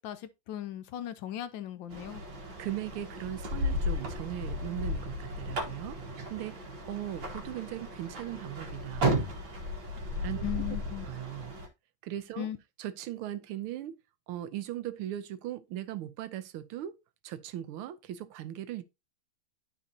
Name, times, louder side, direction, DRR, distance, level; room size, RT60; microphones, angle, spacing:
voice 1, 0.0-2.2 10.4-11.1 12.4-12.6, left 11 dB, 75° left, 1.2 m, -37 dB
sound 1, 1.9-11.7, equal, 65° right, 2.0 m, -34 dB
voice 2, 2.6-9.2 10.2-10.4 11.0-11.5 12.0-12.5 12.8-14.0 14.3-17.0 17.2-18.8, right 12 dB, 85° right, 1.6 m, -38 dB
12.0 x 4.1 x 2.7 m
omnidirectional pair, 2.3 m